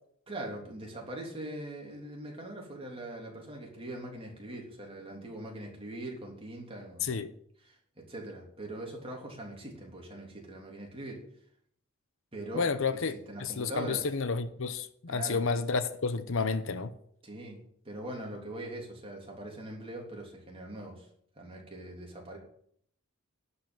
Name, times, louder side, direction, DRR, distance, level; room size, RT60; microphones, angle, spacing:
voice 1, 0.3-7.2 7.6-11.2 12.3-12.7 13.3-14.0 15.1-15.4 17.2-21.1 21.3-22.4, right 1 dB, 25° right, 3.3 m, -42 dB
voice 2, 12.5-16.9, left 4 dB, 65° left, 0.8 m, -31 dB
11.5 x 5.7 x 8.9 m
head